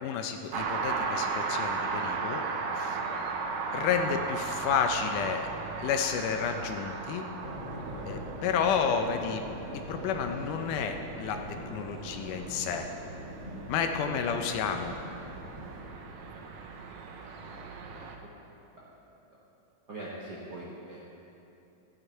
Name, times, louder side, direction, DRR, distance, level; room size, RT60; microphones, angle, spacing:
voice 1, 0.0-2.4 2.8-3.0 3.7-5.5 5.8-7.3 8.1-9.4 9.7-12.9 13.7-14.9, left 6 dB, 80° left, 5 dB, 2.1 m, -31 dB
sound 1, 0.5-18.2, right 4 dB, 75° right, 1.8 m, -37 dB
sound 2, 7.4-15.8, equal, 10° right, 2.0 m, -42 dB
voice 2, 19.9-21.2, right 1 dB, 55° right, -6 dB, 1.1 m, -43 dB
14.0 x 9.7 x 4.5 m, 2.9 s
omnidirectional pair, 3.9 m